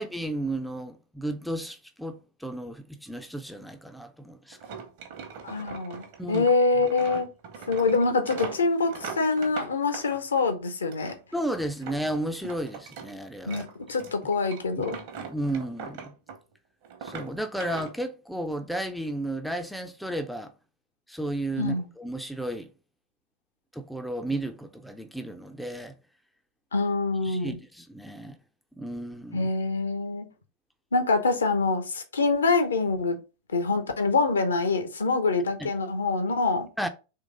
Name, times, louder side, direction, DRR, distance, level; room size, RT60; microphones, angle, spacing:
voice 1, 0.0-4.6 6.2-6.5 11.3-13.6 15.2-16.1 17.0-20.5 21.1-22.7 23.7-25.9 27.2-28.4 28.8-29.5 35.6-35.7 36.8-36.9, right 1 dB, ahead, 0.4 m, -33 dB
sound 1, 4.5-10.5 10.9-13.1 13.4-16.5 16.8-17.9, right 6 dB, 50° right, 1.0 m, -41 dB
voice 2, 5.4-7.3 7.7-11.2 13.5-15.0 21.6-21.9 26.7-27.6 29.3-30.3 30.9-33.2 33.5-36.7, left 3 dB, 70° left, 0.8 m, -25 dB
3.8 x 3.1 x 3.7 m
figure-of-eight pair, 90°, 0 cm